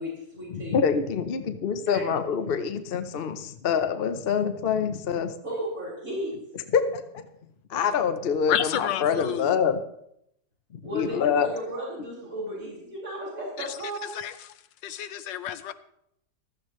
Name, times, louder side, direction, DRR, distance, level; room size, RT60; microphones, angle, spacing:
voice 1, 0.0-0.8 1.9-2.0 5.4-6.4 10.8-14.1, equal, 50° right, -7 dB, 4.8 m, -34 dB
voice 2, 0.5-5.3 6.7-7.2 7.7-9.8 10.7-11.5, left 6 dB, 55° left, 9 dB, 0.6 m, -26 dB
voice 3, 8.5-9.6 13.6-13.8 14.1-14.5 14.8-15.7, left 11 dB, 90° left, 12 dB, 1.4 m, -30 dB
15.0 x 13.0 x 3.1 m, 0.76 s
omnidirectional pair, 1.9 m